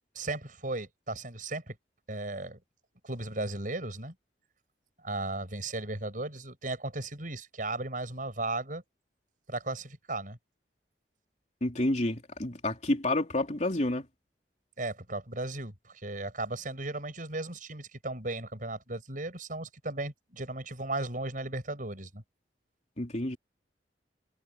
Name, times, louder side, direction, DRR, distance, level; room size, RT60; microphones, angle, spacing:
voice 1, 0.2-1.8 2.1-2.6 3.0-4.1 5.0-8.8 9.5-10.4 14.8-15.7 16.0-22.2, right 2 dB, 50° right, 7.0 m, -36 dB
voice 2, 11.6-14.1 23.0-23.4, left 1 dB, 40° left, 3.3 m, -29 dB
head